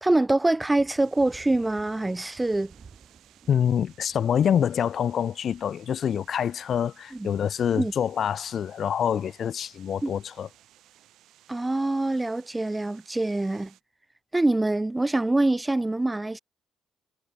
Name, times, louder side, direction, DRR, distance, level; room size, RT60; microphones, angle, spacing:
voice 1, 0.0-2.7 7.1-7.3 7.8-7.9 10.0-10.1 11.5-13.7 14.3-16.4, right 2 dB, 15° right, 0.5 m, -24 dB
sound 1, 0.8-10.7, right 5 dB, 40° right, 2.5 m, -56 dB
sound 2, 1.0-13.8, right 13 dB, 85° right, 7.0 m, -58 dB
voice 2, 3.5-10.5, left 8 dB, 60° left, 0.5 m, -26 dB
cardioid pair, 90°, 0 cm